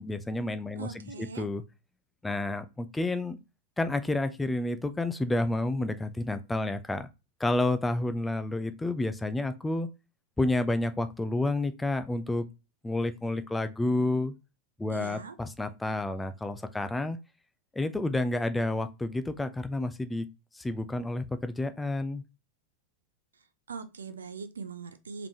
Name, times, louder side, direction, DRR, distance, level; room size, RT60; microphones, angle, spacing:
voice 1, 0.0-1.6 2.2-3.4 3.8-7.1 7.4-9.9 10.4-12.4 12.8-14.3 14.8-17.2 17.7-20.3 20.5-22.2, left 2 dB, 10° left, 0.5 m, -30 dB
voice 2, 0.8-1.5 14.9-15.4 23.7-25.3, right 5 dB, 70° right, 0.6 m, -41 dB
3.8 x 3.6 x 2.9 m
figure-of-eight pair, 90°, 0 cm